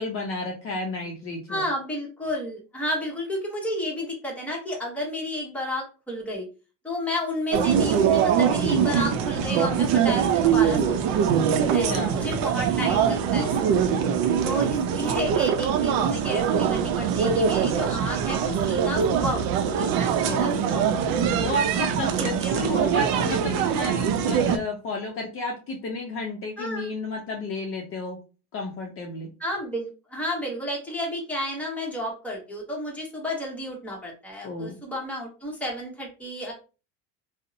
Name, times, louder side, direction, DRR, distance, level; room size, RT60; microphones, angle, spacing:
voice 1, 0.0-1.6 11.6-12.2 20.2-20.6 21.4-28.2 28.5-29.3 34.4-34.8, left 2 dB, 40° left, 1 dB, 0.5 m, -32 dB
voice 2, 1.5-6.5 6.8-11.2 11.6-14.0 14.4-20.9 22.2-22.8 26.6-26.9 29.4-36.5, left 1 dB, 5° left, -2 dB, 0.9 m, -32 dB
sound 1, 7.5-24.6, right 7 dB, 70° right, 0.5 m, -23 dB
2.6 x 2.0 x 2.6 m, 0.33 s
supercardioid pair, 115°, 35 cm